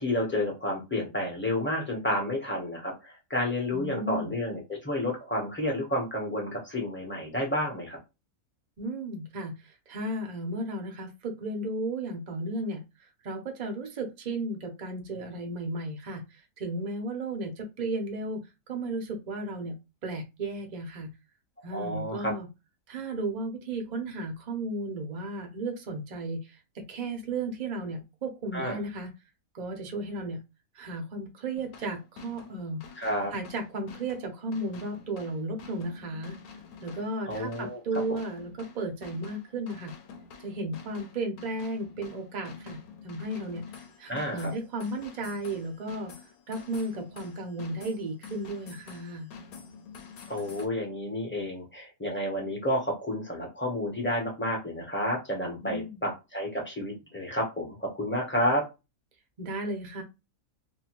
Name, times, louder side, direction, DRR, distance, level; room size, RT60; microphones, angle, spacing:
voice 1, 0.0-8.0 21.7-22.3 28.5-28.8 33.0-33.3 37.3-38.2 44.1-44.5 50.3-58.6, left 1 dB, 10° left, -1 dB, 0.6 m, -30 dB
voice 2, 3.7-4.3 8.8-18.4 18.7-19.8 20.0-21.1 21.6-22.5 22.9-29.1 29.5-30.4 30.7-32.8 33.3-36.4 36.8-39.9 40.4-42.8 43.0-43.6 44.0-46.1 46.5-49.3 55.6-56.0 59.4-60.0, right 2 dB, 50° right, 3 dB, 0.5 m, -34 dB
sound 1, 31.6-50.7, left 5 dB, 75° left, 1.1 m, -48 dB
2.6 x 2.2 x 2.9 m, 0.25 s
omnidirectional pair, 1.5 m